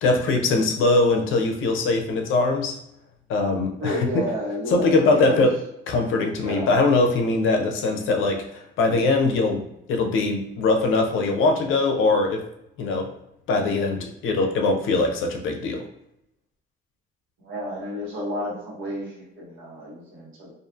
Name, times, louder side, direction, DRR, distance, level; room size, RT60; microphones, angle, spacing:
voice 1, 0.0-2.8 3.3-4.2 4.7-5.5 5.9-12.4 12.8-13.1 13.5-15.8, left 3 dB, 85° left, 3 dB, 0.5 m, -22 dB
voice 2, 3.8-5.5 6.4-6.7 17.4-20.5, equal, 80° right, -4 dB, 1.1 m, -31 dB
2.5 x 2.4 x 2.4 m, 0.79 s
cardioid pair, 90°, 20 cm